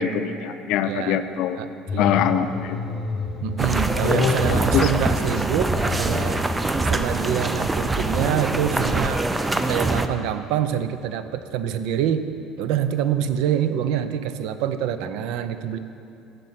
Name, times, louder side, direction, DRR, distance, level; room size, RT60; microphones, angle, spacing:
voice 1, 0.0-1.6 2.0-2.8 4.0-4.9, left 8 dB, 65° left, 10 dB, 0.4 m, -23 dB
voice 2, 0.8-1.2 1.6-2.3 3.4-6.4 6.8-9.2 9.6-12.3 12.6-15.8, right 9 dB, 75° right, 11 dB, 0.4 m, -26 dB
sound 1, 1.9-11.7 12.0-12.1, left 3 dB, 25° left, 1.0 m, -34 dB
sound 2, 3.6-10.1, right 2 dB, 10° right, 0.4 m, -24 dB
7.5 x 6.6 x 5.7 m, 2.6 s
cardioid pair, 130°, 0 cm